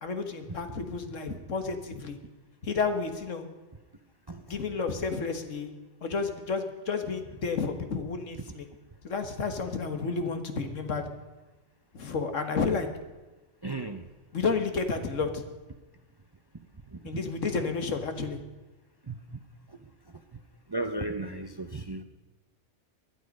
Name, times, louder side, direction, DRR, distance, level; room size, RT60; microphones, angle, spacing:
voice 1, 0.0-2.2 2.6-3.5 4.5-5.7 6.0-8.7 9.0-11.1 11.9-12.9 14.3-15.4 17.0-18.4, left 4 dB, 75° left, 7 dB, 1.9 m, -31 dB
voice 2, 4.3-4.6 13.6-14.0 16.9-17.0 17.6-17.7 19.1-19.2 20.7-22.0, right 2 dB, 25° right, 9 dB, 0.6 m, -35 dB
20.0 x 12.0 x 5.3 m, 1.2 s
omnidirectional pair, 1.3 m